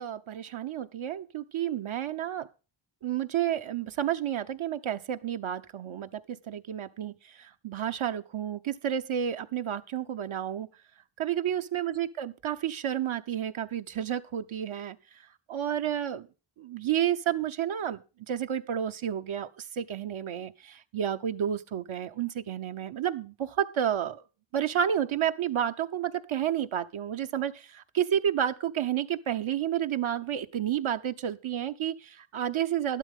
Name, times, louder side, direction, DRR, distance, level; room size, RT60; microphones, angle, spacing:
voice 1, 0.0-2.5 3.0-10.7 11.2-15.0 15.5-16.3 16.6-18.0 18.3-24.2 24.5-33.0, right 10 dB, 85° right, 1.0 m, -31 dB
12.0 x 12.0 x 3.7 m
wide cardioid pair, 100°, 47 cm